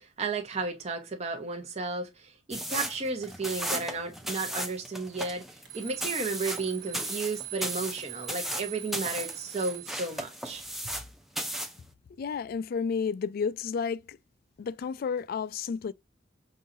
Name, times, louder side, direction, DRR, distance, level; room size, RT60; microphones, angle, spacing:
voice 1, 0.0-10.6, right 3 dB, 35° right, 0.7 m, -33 dB
sound 1, 2.5-11.1 11.4-11.8, equal, ahead, 0.5 m, -35 dB
Alarm, 5.6-10.1, right 12 dB, 75° right, 1.3 m, -42 dB
voice 2, 12.2-14.2 14.6-15.9, left 6 dB, 55° left, 0.3 m, -31 dB
5.4 x 2.7 x 2.5 m
head